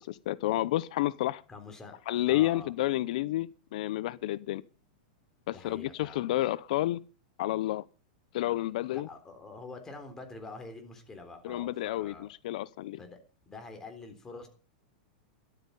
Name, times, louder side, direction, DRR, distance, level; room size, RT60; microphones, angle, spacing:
voice 1, 0.0-1.4 2.1-4.6 5.5-7.0 7.4-7.9 8.3-9.1 11.4-13.0, left 15 dB, 60° left, 0.7 m, -30 dB
voice 2, 1.5-2.0 2.3-2.7 5.5-6.2 8.9-12.3 13.0-13.2 13.5-14.5, left 3 dB, 10° left, 3.7 m, -46 dB
13.0 x 12.0 x 5.4 m
supercardioid pair, 150°, 5 cm